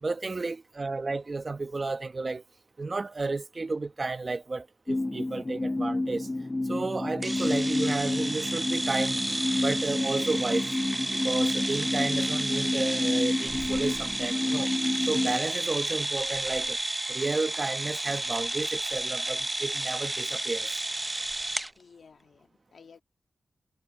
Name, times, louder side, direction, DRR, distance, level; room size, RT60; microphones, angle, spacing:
voice 1, 0.0-2.4 2.8-6.3 6.7-9.2 9.6-10.7 11.1-14.7 15.1-16.8 17.1-20.7, right 3 dB, 50° right, 1.3 m, -32 dB
sound 1, 4.9-15.4, left 2 dB, 35° left, 0.7 m, -29 dB
sound 2, 7.2-21.7, right 2 dB, 30° right, 0.7 m, -32 dB
Piano, 9.1-13.5, right 4 dB, 70° right, 7.9 m, -67 dB
voice 2, 21.8-23.0, left 5 dB, 80° left, 1.9 m, -54 dB
cardioid pair, 45°, 0 cm